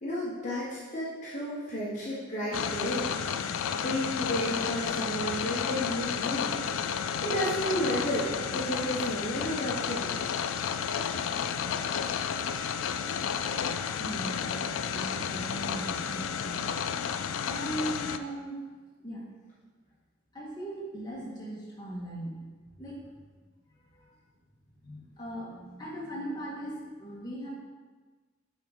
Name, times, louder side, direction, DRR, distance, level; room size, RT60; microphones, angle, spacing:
voice 1, 0.0-3.1 3.8-6.6 7.2-10.1, equal, 40° left, -8 dB, 1.3 m, -32 dB
sound 1, 2.5-18.2, left 7 dB, 90° left, 0.4 m, -32 dB
voice 2, 14.0-16.7 17.5-18.6 19.0-19.2 20.3-23.1 23.8-24.1 24.8-27.5, right 1 dB, 20° left, -6 dB, 1.6 m, -39 dB
7.4 x 3.8 x 5.0 m, 1.4 s
head